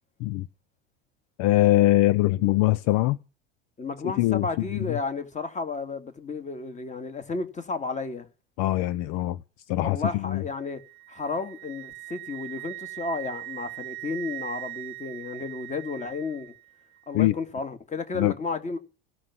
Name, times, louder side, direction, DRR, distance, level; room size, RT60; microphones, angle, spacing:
voice 1, 1.4-3.2 4.0-5.0 8.6-9.4 9.7-10.4 17.1-17.3 18.1-18.3, left 16 dB, 60° left, 0.7 m, -23 dB
voice 2, 3.8-8.3 9.8-10.8 11.1-16.5 17.1-18.8, left 4 dB, 25° left, 2.4 m, -32 dB
Wind instrument woodwind instrument, 10.6-16.6, right 21 dB, 75° right, 0.8 m, -40 dB
16.5 x 6.1 x 9.5 m
supercardioid pair, 110°, 31 cm